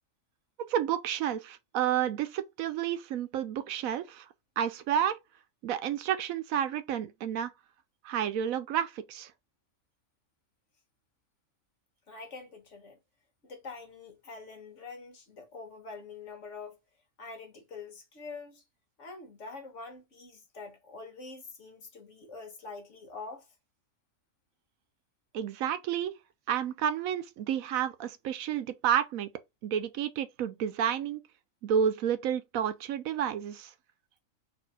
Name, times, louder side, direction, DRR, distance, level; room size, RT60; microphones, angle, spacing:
voice 1, 0.7-4.3 4.6-5.2 5.6-7.5 8.0-9.3 25.3-26.1 26.5-29.3 29.6-31.2 31.6-33.7, right 9 dB, 75° right, 1.0 m, -30 dB
voice 2, 12.1-13.0 13.4-16.8 17.2-18.6 19.0-23.5, left 4 dB, 60° left, 1.6 m, -45 dB
4.2 x 2.8 x 4.0 m
omnidirectional pair, 1.5 m